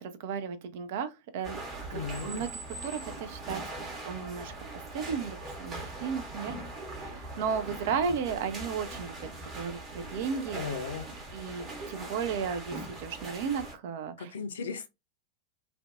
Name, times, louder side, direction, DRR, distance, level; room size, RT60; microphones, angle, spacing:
voice 1, 0.0-1.6 1.9-3.6 4.0-4.5 4.9-9.2 9.5-10.6 11.3-14.3, right 6 dB, 50° right, 0.4 m, -34 dB
sound 1, 1.4-13.7, right 2 dB, 25° right, 1.0 m, -41 dB
voice 2, 1.9-2.5 10.6-11.1 14.2-14.9, left 5 dB, 65° left, 0.4 m, -36 dB
2.5 x 2.1 x 2.4 m
figure-of-eight pair, 90°, 0 cm